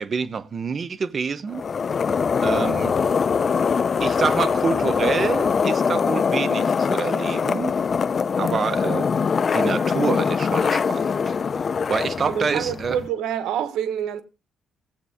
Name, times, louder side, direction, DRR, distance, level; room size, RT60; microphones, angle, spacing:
voice 1, 0.0-1.6 2.4-2.9 4.0-7.8 8.4-9.1 9.5-11.3 11.9-13.0, right 5 dB, 45° right, 1.0 m, -27 dB
sound 1, 1.5-13.1, left 6 dB, 45° left, 0.5 m, -23 dB
voice 2, 12.2-14.2, right 9 dB, 85° right, 1.3 m, -27 dB
16.5 x 8.2 x 3.6 m
cardioid pair, 90°, 0 cm